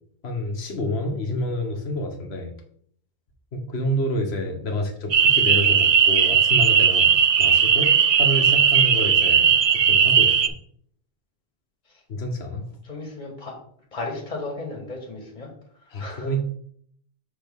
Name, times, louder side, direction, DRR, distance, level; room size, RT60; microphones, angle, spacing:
voice 1, 0.2-2.5 3.5-7.9 8.2-9.5 9.8-10.4 12.1-12.6 15.9-16.4, equal, 70° left, 4 dB, 1.4 m, -28 dB
sound 1, 5.1-10.5, right 7 dB, 55° right, 0.4 m, -17 dB
voice 2, 12.8-13.5 13.9-15.5 15.8-16.3, left 3 dB, 35° left, 0 dB, 1.7 m, -35 dB
6.2 x 5.7 x 3.6 m, 0.63 s
omnidirectional pair, 1.1 m